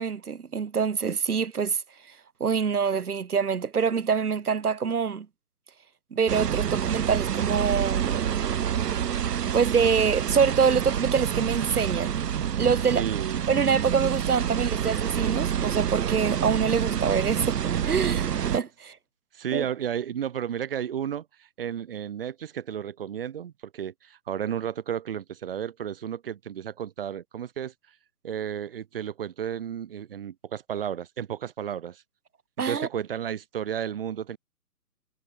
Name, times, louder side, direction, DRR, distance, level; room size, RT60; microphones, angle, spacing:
voice 1, 0.0-1.8 2.4-5.3 6.1-8.3 9.5-12.2 12.6-13.0 13.5-19.0 19.5-19.7 32.6-32.9, right 6 dB, 70° right, 3.0 m, -25 dB
sound 1, 6.3-18.6, right 9 dB, 90° right, 0.8 m, -27 dB
voice 2, 12.9-13.4 19.3-27.7 28.2-32.0 32.6-34.4, right 9 dB, 35° right, 3.1 m, -33 dB
hypercardioid pair, 165°, 47 cm